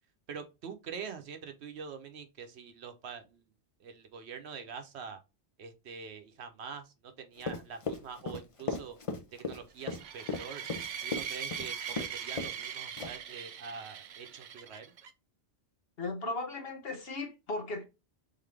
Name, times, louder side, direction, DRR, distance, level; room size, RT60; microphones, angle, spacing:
voice 1, 0.3-3.5 3.8-5.2 5.6-9.0 9.3-10.6 11.0-14.9, right 6 dB, 75° right, 1.0 m, -45 dB
Run, 7.4-12.1 12.4-12.6 13.0-13.3, left 3 dB, 35° left, 0.6 m, -36 dB
sound 1, 9.8-15.1, right 8 dB, 55° right, 0.6 m, -41 dB
voice 2, 16.0-17.8, left 2 dB, 65° left, 1.0 m, -36 dB
3.8 x 3.8 x 3.3 m
omnidirectional pair, 1.1 m